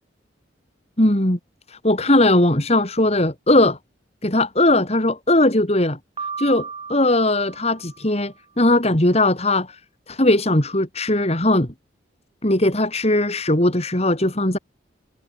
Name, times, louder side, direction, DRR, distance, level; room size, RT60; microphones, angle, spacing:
voice 1, 1.0-1.4 1.7-3.8 4.2-6.0 6.4-9.8 10.1-11.7 12.4-14.6, left 1 dB, 35° left, 3.4 m, -19 dB
Piano, 6.2-8.3, right 5 dB, 30° right, 6.2 m, -35 dB
head